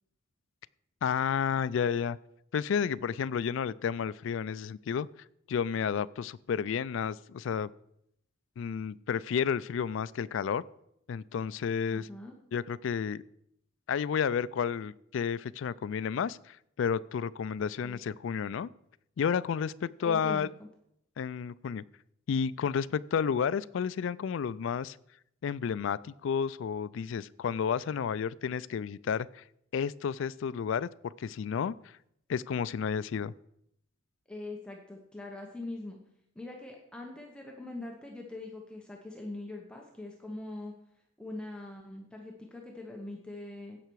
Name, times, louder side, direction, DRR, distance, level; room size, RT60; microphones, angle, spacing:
voice 1, 1.0-2.2 2.5-5.1 5.5-7.7 8.6-10.6 11.1-12.1 12.5-13.2 13.9-18.7 19.2-20.5 21.2-21.8 22.3-25.0 25.4-29.4 29.7-31.7 32.3-33.3, left 7 dB, 60° left, 19 dB, 0.3 m, -31 dB
voice 2, 11.9-12.4 17.8-18.0 20.0-20.7 34.3-36.0 36.3-40.7 41.2-43.8, left 2 dB, 5° left, 0 dB, 0.9 m, -42 dB
15.5 x 5.8 x 4.6 m, 0.75 s
head